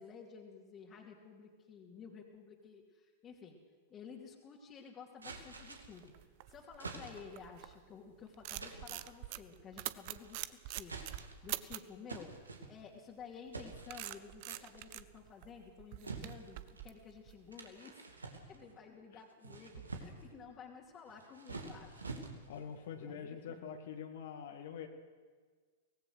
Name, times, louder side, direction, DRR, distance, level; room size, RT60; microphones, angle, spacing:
voice 1, 0.0-3.6 3.9-6.1 6.5-12.3 12.7-18.1 18.5-22.1 23.0-23.7, left 6 dB, 25° left, -3 dB, 2.6 m, -53 dB
sound 1, 5.2-6.1 6.8-7.4 8.6-9.1 10.0-10.4 10.8-11.5 12.1-13.1 13.5-14.2 14.5-14.9 16.0-16.9 17.5-18.8 19.3-20.3 21.1-22.7, right 3 dB, 80° right, 2.4 m, -48 dB
sound 2, 5.5-7.9 8.2-12.0 13.2-17.7, right 17 dB, 45° right, 0.8 m, -45 dB
voice 2, 22.5-24.9, left 7 dB, 60° left, 3 dB, 2.1 m, -45 dB
24.0 x 18.5 x 6.4 m, 1.5 s
figure-of-eight pair, 95°, 0 cm